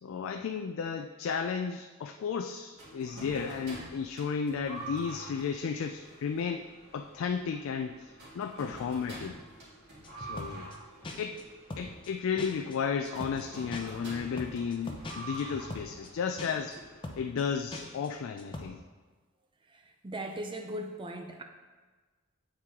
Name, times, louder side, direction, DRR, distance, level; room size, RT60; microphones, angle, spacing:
voice 1, 0.0-6.7 6.9-9.4 10.2-10.7 11.2-11.4 11.8-16.8 17.2-18.8, left 6 dB, 60° left, 5 dB, 0.3 m, -33 dB
sound 1, 2.8-17.5, right 2 dB, 50° right, 2.1 m, -47 dB
sound 2, 10.0-10.8 11.0-11.4 11.7-12.1 12.4-12.8 13.0-13.4 13.7-16.1 16.4-16.8 17.0-17.4 17.7-18.1 18.4-18.6, left 2 dB, 20° left, 0.6 m, -41 dB
voice 2, 19.7-21.4, right 1 dB, 20° right, 4 dB, 0.5 m, -39 dB
8.4 x 4.5 x 3.6 m, 1.4 s
head